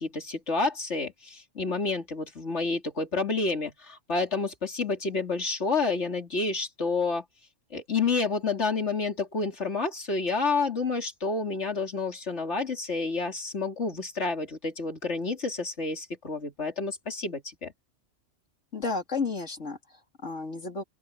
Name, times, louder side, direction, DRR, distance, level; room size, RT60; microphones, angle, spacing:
voice 1, 0.0-7.2 7.7-17.7, left 4 dB, 75° left, 3.4 m, -29 dB
voice 2, 18.7-20.8, left 4 dB, 90° left, 3.4 m, -32 dB
open air
omnidirectional pair, 1.2 m